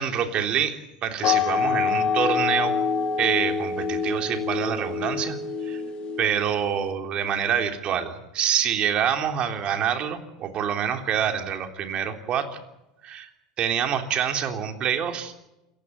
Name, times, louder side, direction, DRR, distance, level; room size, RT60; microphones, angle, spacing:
voice 1, 0.0-2.7 3.2-5.4 5.6-5.8 6.2-12.6 13.0-13.3 13.6-15.3, right 8 dB, 40° right, 5 dB, 3.5 m, -26 dB
sound 1, 1.2-6.7, left 5 dB, 40° left, 2.8 m, -26 dB
28.0 x 15.5 x 9.3 m, 0.95 s
hypercardioid pair, 85°, 3 cm